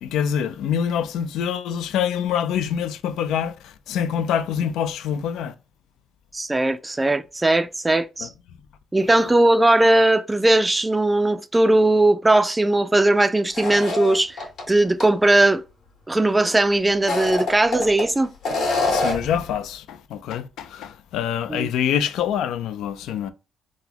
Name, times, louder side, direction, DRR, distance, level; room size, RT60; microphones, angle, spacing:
voice 1, 0.0-5.5 8.2-8.3 18.9-23.3, left 8 dB, 85° left, 0.3 m, -25 dB
voice 2, 6.3-8.3 8.9-14.4 14.7-15.6 16.1-18.3 21.5-21.7, right 2 dB, 15° right, 0.3 m, -19 dB
sound 1, 13.5-14.6 15.0-15.1 16.9-18.0 18.4-19.3, left 3 dB, 70° left, 1.6 m, -25 dB
3.9 x 2.1 x 2.8 m
cardioid pair, 90°, 0 cm